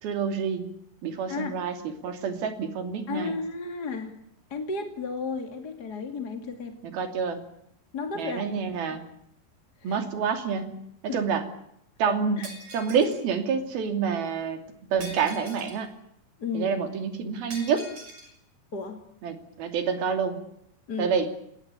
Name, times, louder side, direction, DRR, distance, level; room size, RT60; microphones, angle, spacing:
voice 1, 0.0-0.7 1.0-1.8 2.0-3.3 6.8-7.4 8.1-9.0 9.8-10.7 11.0-11.4 12.0-12.4 12.7-14.6 14.9-15.9 16.5-17.9 19.2-20.4 21.0-21.3, right 6 dB, 65° right, 6 dB, 4.6 m, -27 dB
voice 2, 3.1-4.2 4.5-6.8 7.9-8.4 8.9-9.0 9.8-10.0 11.1-11.2 12.1-12.5 16.4-16.8 18.7-19.0 20.9-21.1, left 4 dB, 30° left, 5 dB, 2.3 m, -33 dB
Shatter, 12.4-13.2 15.0-15.9 17.5-18.3, right 1 dB, 40° right, 6.8 m, -43 dB
26.0 x 20.0 x 8.4 m, 0.76 s
omnidirectional pair, 4.8 m